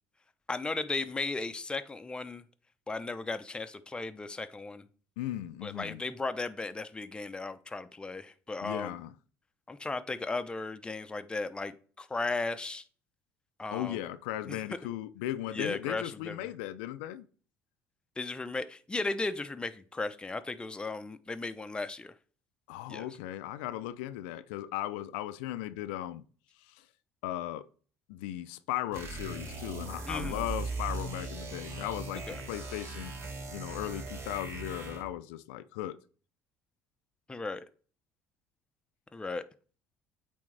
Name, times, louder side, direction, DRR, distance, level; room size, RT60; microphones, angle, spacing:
voice 1, 0.5-2.4 2.9-4.8 5.6-9.0 9.7-12.8 13.6-14.0 14.5-14.6 15.5-16.5 18.2-22.1 22.9-23.1 30.1-30.5 32.3-32.4 37.3-37.7 39.1-39.4, left 3 dB, 15° left, 0.6 m, -36 dB
voice 2, 5.2-6.0 8.6-9.1 13.7-17.3 22.7-26.2 26.6-26.8 27.2-27.7 28.1-33.1 33.5-36.0, left 13 dB, 90° left, 0.4 m, -37 dB
sound 1, 28.9-35.2, right 3 dB, 50° right, 1.9 m, -39 dB
8.3 x 3.6 x 3.3 m
supercardioid pair, 85°, 6 cm